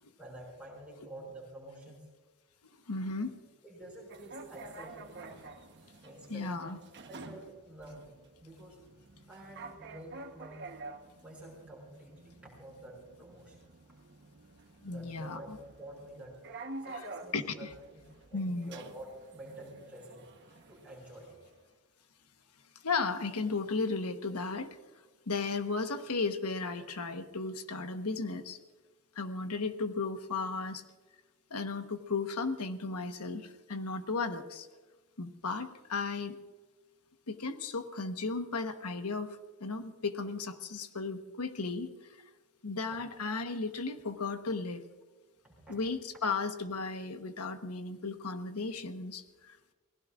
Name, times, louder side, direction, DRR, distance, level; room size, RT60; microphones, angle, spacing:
voice 1, 0.2-2.1 3.6-5.3 6.0-6.7 7.1-8.1 8.4-8.8 9.3-10.6 11.2-12.3 12.6-13.6 14.9-16.4 16.8-18.0 18.3-20.3 20.7-21.3 45.4-45.8, right 1 dB, 5° right, -4 dB, 6.4 m, -49 dB
voice 2, 2.9-3.4 6.3-6.8 14.8-15.6 16.9-17.0 17.3-17.4 18.3-18.7 22.8-24.8 25.3-28.6 29.1-30.8 31.5-34.7 35.2-36.3 37.3-41.9 42.6-44.8 45.7-49.7, left 4 dB, 85° left, 7 dB, 1.2 m, -35 dB
sound 1, 4.1-21.6, right 2 dB, 50° right, 1.1 m, -49 dB
28.5 x 19.0 x 2.5 m, 1.3 s
head